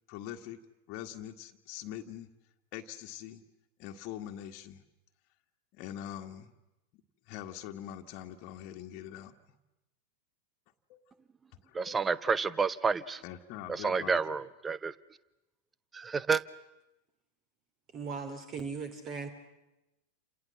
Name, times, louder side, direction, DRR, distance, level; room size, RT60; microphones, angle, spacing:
voice 1, 0.1-0.6 0.9-2.3 2.7-3.4 3.8-4.8 5.7-6.5 6.9-9.3 10.9-11.1 11.6-12.0 13.2-14.2, left 11 dB, 40° left, 4 dB, 1.9 m, -43 dB
voice 2, 11.7-13.2 13.7-14.9 15.9-16.4, right 5 dB, 15° right, 18 dB, 1.0 m, -29 dB
voice 3, 17.9-19.3, right 5 dB, 30° right, 9 dB, 3.2 m, -38 dB
29.5 x 27.5 x 7.3 m, 0.96 s
figure-of-eight pair, 90°, 0 cm